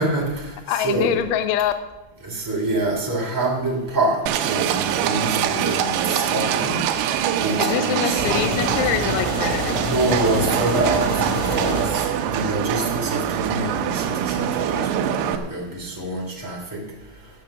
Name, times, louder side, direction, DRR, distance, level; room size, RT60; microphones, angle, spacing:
voice 1, 0.0-1.1 2.2-6.8 7.3-8.2 9.8-16.6, right 2 dB, 15° right, -3 dB, 0.6 m, -26 dB
voice 2, 0.7-1.7 7.6-9.8, left 10 dB, 80° left, 9 dB, 2.9 m, -24 dB
Livestock farm animals working animals, 4.3-15.4, right 10 dB, 90° right, 3.6 m, -24 dB
sound 1, 8.2-12.2, equal, 35° right, 4.2 m, -27 dB
13.0 x 6.9 x 7.8 m, 1.0 s
omnidirectional pair, 5.9 m